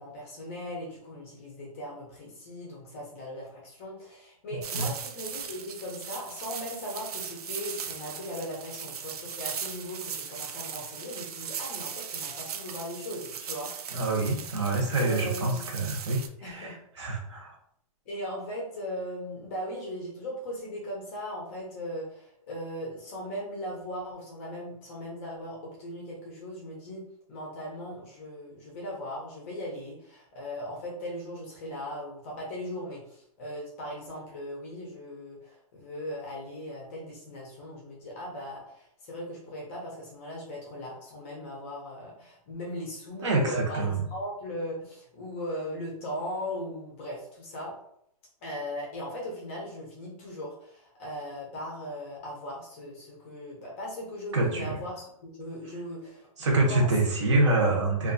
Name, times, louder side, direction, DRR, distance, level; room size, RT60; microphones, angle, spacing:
voice 1, 0.0-13.7 14.5-14.7 14.9-15.7 16.4-16.8 18.1-27.0 27.3-47.7 48.4-57.4, equal, 20° left, -2 dB, 0.5 m, -38 dB
sound 1, 4.6-16.3, right 7 dB, 90° right, 0.4 m, -38 dB
voice 2, 13.9-17.5 43.2-44.0 54.3-54.8 56.4-58.1, right 2 dB, 50° right, 0 dB, 0.8 m, -26 dB
2.7 x 2.3 x 2.5 m, 0.70 s
hypercardioid pair, 175°, 19 cm